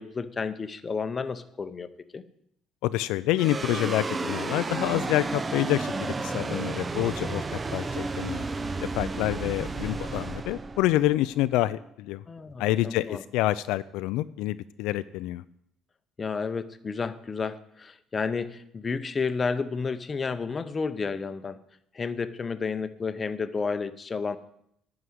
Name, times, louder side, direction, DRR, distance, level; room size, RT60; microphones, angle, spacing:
voice 1, 0.0-2.2 12.3-13.2 16.2-21.6 21.9-24.4, left 5 dB, 30° left, 12 dB, 0.7 m, -31 dB
voice 2, 2.8-7.4 7.7-8.4 8.9-12.2 12.6-15.4, left 15 dB, 90° left, 14 dB, 0.3 m, -27 dB
sound 1, 3.4-11.9, right 3 dB, 25° right, 0.5 m, -32 dB
11.0 x 4.8 x 7.9 m, 0.73 s
cardioid pair, 110°, 0 cm